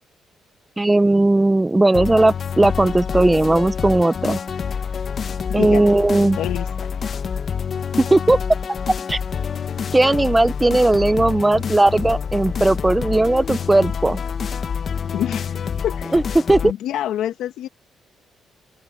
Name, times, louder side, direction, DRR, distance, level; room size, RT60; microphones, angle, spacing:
voice 1, 0.8-4.4 5.5-6.4 8.0-8.4 9.1-9.2 9.9-14.2 16.1-16.7, right 2 dB, 15° right, 0.7 m, -17 dB
sound 1, 1.9-16.7, left 7 dB, 50° left, 1.1 m, -27 dB
voice 2, 5.6-5.9 6.4-6.7 15.1-16.1 16.6-17.7, left 11 dB, 85° left, 1.8 m, -26 dB
open air
cardioid pair, 90°, 0 cm